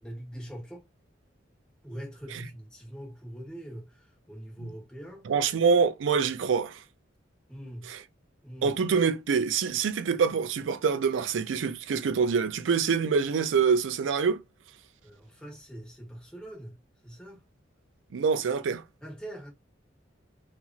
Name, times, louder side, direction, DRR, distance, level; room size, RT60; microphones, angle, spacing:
voice 1, 0.0-0.8 1.8-5.2 7.5-7.9 8.4-8.7 15.0-16.8 17.0-17.4 19.0-19.5, right 1 dB, 5° left, 1.2 m, -42 dB
voice 2, 5.2-6.8 7.9-8.0 8.6-14.4 18.1-18.8, right 5 dB, 85° right, 0.4 m, -25 dB
2.8 x 2.5 x 2.3 m
head